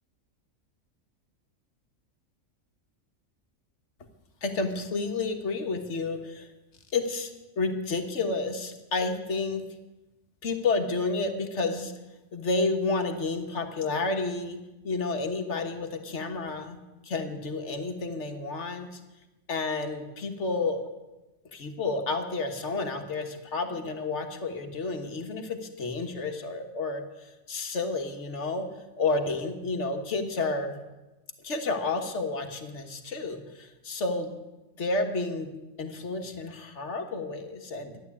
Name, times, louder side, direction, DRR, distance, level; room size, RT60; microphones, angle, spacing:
voice 1, 4.4-6.5 6.9-9.6 10.4-11.9 12.3-16.8 17.0-19.0 19.5-20.8 21.5-28.7 29.0-30.8 31.4-34.4 34.8-35.5 35.8-38.0, left 3 dB, 60° left, 6 dB, 1.7 m, -30 dB
12.5 x 10.5 x 8.4 m, 1.1 s
omnidirectional pair, 1.4 m